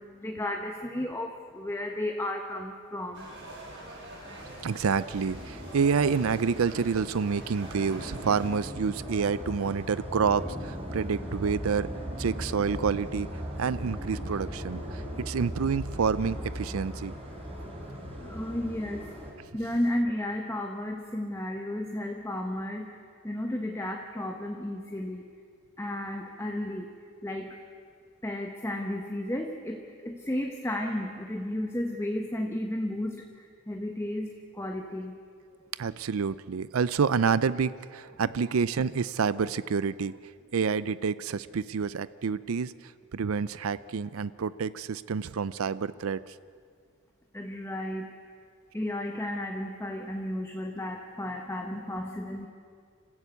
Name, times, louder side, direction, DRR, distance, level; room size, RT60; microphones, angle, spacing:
voice 1, 0.2-1.3 1.5-3.2 18.3-19.0 19.5-22.9 23.2-25.2 25.8-26.8 27.2-27.5 28.2-29.8 30.0-33.1 33.7-34.3 34.6-35.1 47.3-48.0 48.7-52.5, left 1 dB, 15° left, 3 dB, 1.1 m, -33 dB
sound 1, 3.1-8.5, right 1 dB, 65° right, 7.8 m, -45 dB
sound 2, 4.2-19.3, equal, 30° right, 4.8 m, -38 dB
voice 2, 4.6-11.9 12.2-13.3 13.6-17.1 35.8-40.2 40.5-46.3, right 5 dB, 85° right, 17 dB, 0.5 m, -28 dB
26.0 x 15.5 x 8.2 m, 2.2 s
head